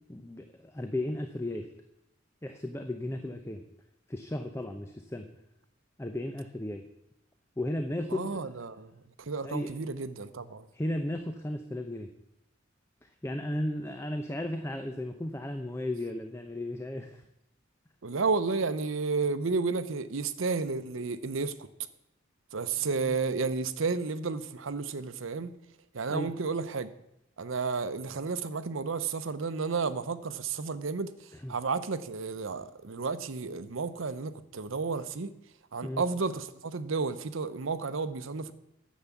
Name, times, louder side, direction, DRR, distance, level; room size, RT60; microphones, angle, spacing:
voice 1, 0.1-1.7 2.4-3.6 4.1-5.3 6.0-6.8 7.6-8.5 9.4-9.7 10.7-12.1 13.0-17.2 23.0-23.2 26.1-26.3 31.3-31.5 35.8-36.0, left 1 dB, 15° left, 0.6 m, -35 dB
voice 2, 8.1-8.9 9.2-10.7 18.0-21.7 22.5-25.5 25.9-26.9 27.4-35.3 35.7-38.5, right 4 dB, 80° right, 0.7 m, -32 dB
10.0 x 7.3 x 7.1 m
head